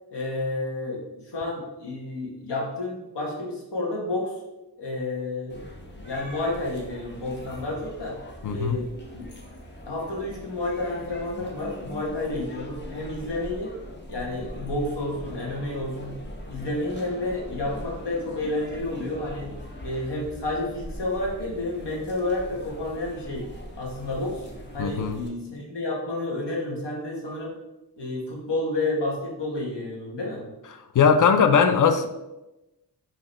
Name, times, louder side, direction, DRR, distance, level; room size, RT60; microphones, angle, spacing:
voice 1, 0.1-4.3 4.8-5.6 6.0-8.2 8.5-9.3 9.9-13.7 14.1-16.1 16.5-19.5 19.8-23.5 23.8-24.5 24.7-27.6 28.0-30.4, left 2 dB, 80° left, -2 dB, 1.3 m, -30 dB
castleguimaraes people talking, 5.5-25.3, left 1 dB, 25° left, 0.8 m, -41 dB
voice 2, 8.4-8.8 24.8-25.2 30.9-32.1, left 6 dB, 50° left, 8 dB, 0.5 m, -19 dB
5.1 x 3.0 x 3.1 m, 1.0 s
wide cardioid pair, 100°, 41 cm